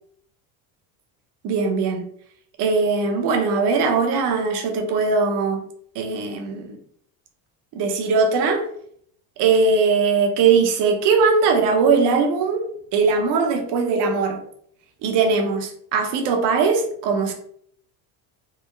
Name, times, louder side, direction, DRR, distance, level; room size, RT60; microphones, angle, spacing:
voice 1, 1.4-2.1 2.6-5.7 5.9-6.8 7.7-8.7 9.4-14.4 15.0-17.3, right 4 dB, 55° right, 0.9 m, -20 dB
3.5 x 2.1 x 3.2 m
supercardioid pair, 110°, 49 cm